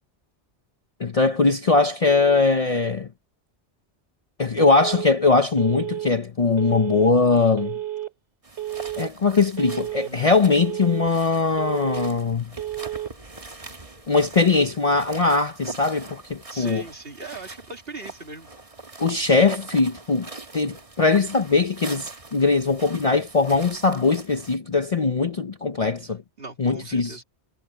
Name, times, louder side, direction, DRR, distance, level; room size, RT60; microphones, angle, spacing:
voice 1, 1.0-3.1 4.4-7.8 9.0-12.5 14.1-16.8 19.0-20.3 20.5-26.2 26.6-27.1, left 4 dB, 40° left, 0.7 m, -21 dB
Telephone, 4.6-5.1 5.6-6.1 6.6-7.1 7.6-8.1 8.6-9.1 9.6-10.1 10.6-11.1 11.6-12.1 12.6-13.1, right 13 dB, 80° right, 2.5 m, -31 dB
sound 1, 8.4-24.6, right 3 dB, 30° right, 1.5 m, -43 dB
voice 2, 10.0-10.5 16.5-18.5 26.4-27.2, right 2 dB, 55° right, 2.8 m, -39 dB
omnidirectional pair, 1.2 m